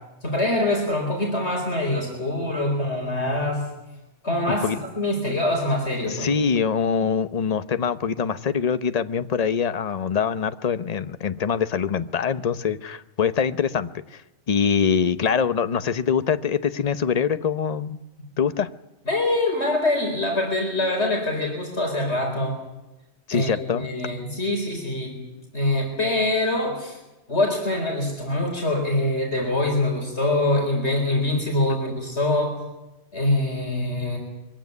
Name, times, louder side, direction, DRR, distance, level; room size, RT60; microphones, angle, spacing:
voice 1, 0.2-3.7 4.2-4.7 5.0-6.3 19.1-22.6 23.3-25.2 25.5-27.0 27.3-32.6 33.1-34.2, left 1 dB, 65° left, 1 dB, 4.7 m, -24 dB
voice 2, 6.1-14.2 14.5-18.0 18.4-18.7 23.3-23.9, left 6 dB, 35° left, 12 dB, 0.9 m, -24 dB
23.0 x 16.5 x 9.5 m, 1.0 s
omnidirectional pair, 1.2 m